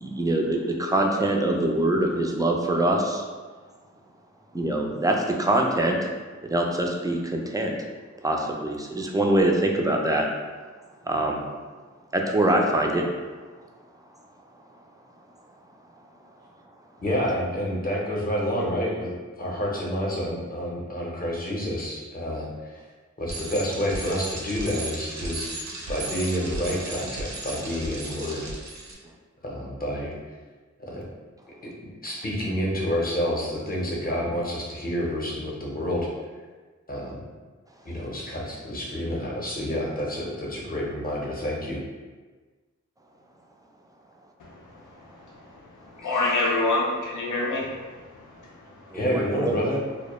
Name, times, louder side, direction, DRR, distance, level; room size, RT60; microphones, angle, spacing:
voice 1, 0.0-3.2 4.5-6.0 6.5-7.8 8.2-10.3 11.0-11.4 12.1-13.1 48.9-49.5, right 1 dB, 15° right, 1 dB, 0.3 m, -24 dB
voice 2, 17.0-19.1 19.4-22.8 23.2-28.5 29.4-30.2 30.9-31.0 31.6-31.7 32.0-36.1 36.9-37.2 37.8-41.8 48.9-49.8, equal, 30° left, -3 dB, 0.6 m, -29 dB
Bicycle, 23.3-28.9, right 2 dB, 65° right, 0.5 m, -36 dB
voice 3, 46.0-48.0 48.7-48.8, left 2 dB, 85° left, -4 dB, 0.5 m, -25 dB
2.2 x 2.0 x 2.9 m, 1.4 s
wide cardioid pair, 55°, 30 cm